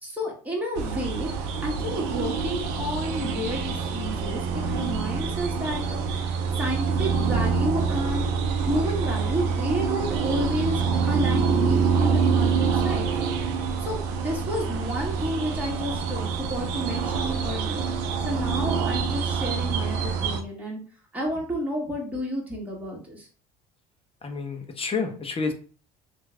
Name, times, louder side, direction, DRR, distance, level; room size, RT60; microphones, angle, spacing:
voice 1, 0.0-6.0 6.6-8.3 8.6-13.1 13.8-17.8 18.2-20.8 21.1-23.3, equal, 5° right, -3 dB, 1.7 m, -31 dB
sound 1, 0.8-20.4, right 5 dB, 70° right, 0.6 m, -26 dB
voice 2, 24.2-25.5, left 4 dB, 25° left, 5 dB, 0.9 m, -29 dB
3.1 x 2.5 x 3.4 m, 0.39 s
hypercardioid pair, 70°, 21 cm